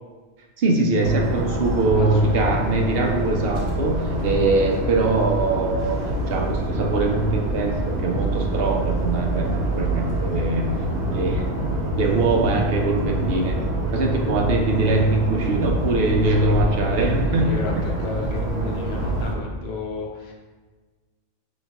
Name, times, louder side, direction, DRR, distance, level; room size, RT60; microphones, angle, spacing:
voice 1, 0.6-10.8 11.1-11.4 12.0-13.6 13.9-17.9, right 2 dB, 65° right, 2 dB, 0.7 m, -22 dB
sound 1, 1.0-19.3, right 1 dB, 85° right, 1.1 m, -26 dB
voice 2, 2.0-2.4 16.4-20.3, left 3 dB, 70° left, -1 dB, 1.0 m, -34 dB
5.6 x 3.1 x 2.3 m, 1.3 s
omnidirectional pair, 1.1 m